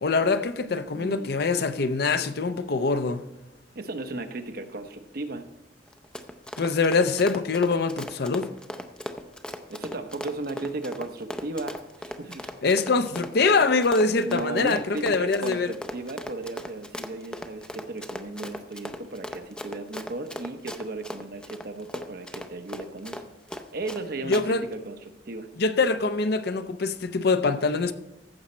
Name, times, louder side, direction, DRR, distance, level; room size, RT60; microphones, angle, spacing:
voice 1, 0.0-3.3 6.6-8.5 12.6-15.7 24.3-24.6 25.6-27.9, left 4 dB, 60° left, 0.6 m, -24 dB
voice 2, 0.7-1.5 3.7-5.5 9.7-12.5 14.2-23.2 23.7-25.5, right 2 dB, 55° right, 0.8 m, -35 dB
Run, 5.9-24.0 24.3-24.4, left 1 dB, 5° left, 0.5 m, -38 dB
15.0 x 6.2 x 4.3 m
head